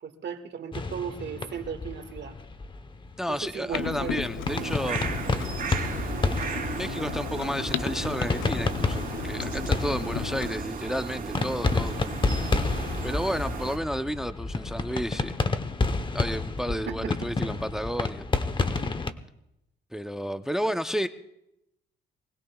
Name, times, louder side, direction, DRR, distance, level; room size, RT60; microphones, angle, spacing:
voice 1, 0.0-2.4 3.3-5.0 16.9-17.3, right 7 dB, 60° right, 6 dB, 1.8 m, -36 dB
sound 1, 0.7-19.1, left 3 dB, 25° left, 0.9 m, -30 dB
voice 2, 3.2-5.0 5.4-5.6 6.8-12.0 13.0-15.3 16.1-18.3 19.9-21.1, equal, ahead, 10 dB, 0.6 m, -31 dB
Clock, 3.7-10.5, left 10 dB, 80° left, 0.7 m, -36 dB
sound 2, 4.5-13.8, right 5 dB, 45° right, 3.1 m, -35 dB
24.5 x 19.0 x 2.3 m, 0.84 s
cardioid pair, 90°, 20 cm